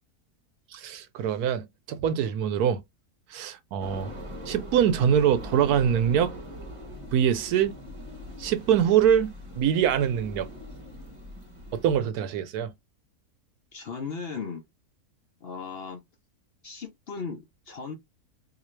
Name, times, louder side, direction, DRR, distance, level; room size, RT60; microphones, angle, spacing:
voice 1, 0.7-2.8 3.3-4.1 4.5-6.3 7.1-7.8 8.4-10.5 11.7-12.7, right 9 dB, 80° right, 1.1 m, -24 dB
sound 1, 3.8-12.0, equal, 25° right, 0.8 m, -41 dB
voice 2, 13.7-14.6 15.4-16.0 16.6-17.9, left 5 dB, 55° left, 0.7 m, -36 dB
3.8 x 2.7 x 3.2 m
omnidirectional pair, 1.6 m